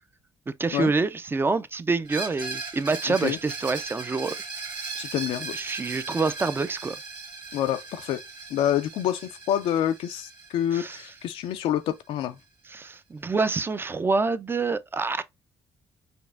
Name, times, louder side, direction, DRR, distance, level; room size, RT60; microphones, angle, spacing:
voice 1, 0.5-4.4 5.5-7.0 10.7-11.0 12.7-15.2, right 3 dB, 25° right, 0.4 m, -26 dB
Screech, 2.1-11.7, right 4 dB, 45° right, 1.9 m, -38 dB
voice 2, 3.1-3.4 5.0-5.5 7.5-8.2 8.5-12.3, left 11 dB, 85° left, 0.4 m, -27 dB
5.1 x 2.5 x 2.3 m
cardioid pair, 95°, 9 cm